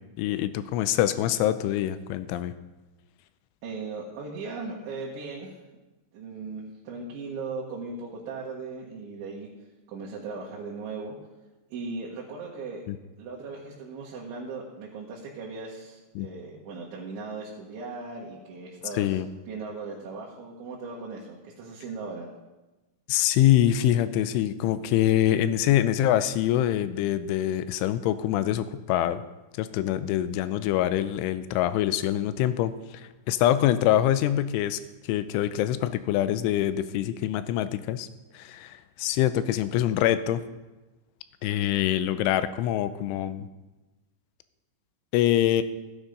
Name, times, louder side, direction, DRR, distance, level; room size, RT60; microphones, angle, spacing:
voice 1, 0.2-2.5 12.9-13.0 16.2-16.3 19.0-19.3 23.1-29.2 29.6-32.7 33.3-34.8 35.1-38.1 38.3-40.4 41.4-43.5 45.1-45.6, left 12 dB, 85° left, 12 dB, 3.1 m, -24 dB
voice 2, 3.6-5.5 6.1-9.5 9.9-11.2 11.7-12.8 13.2-19.2 19.5-22.3, right 4 dB, 75° right, -4 dB, 4.0 m, -38 dB
15.5 x 10.0 x 5.3 m, 1.1 s
omnidirectional pair, 5.5 m